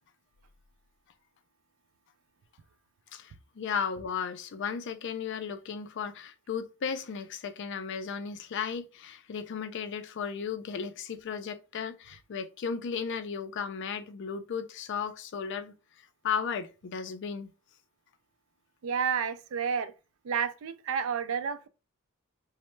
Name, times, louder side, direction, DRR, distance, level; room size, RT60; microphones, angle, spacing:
voice 1, 3.1-17.5, left 6 dB, 55° left, 0.4 m, -35 dB
voice 2, 18.8-19.9 20.2-21.7, right 7 dB, 70° right, 0.4 m, -30 dB
3.1 x 2.1 x 3.1 m
head